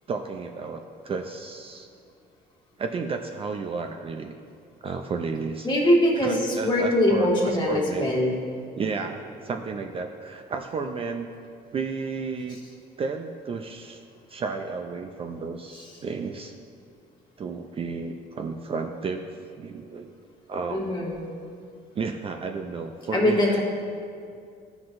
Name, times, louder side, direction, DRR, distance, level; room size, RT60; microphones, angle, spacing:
voice 1, 0.1-1.9 2.8-4.3 4.8-5.7 6.2-8.2 8.8-11.3 11.7-12.6 13.0-14.0 14.3-16.5 17.4-19.3 19.6-20.1 20.5-21.1 22.0-23.6, right 4 dB, 35° right, 5 dB, 0.4 m, -32 dB
voice 2, 5.6-8.4 20.7-21.3 23.1-23.6, left 1 dB, 25° left, -3 dB, 1.8 m, -22 dB
13.5 x 5.9 x 2.6 m, 2.3 s
cardioid pair, 110°, 17 cm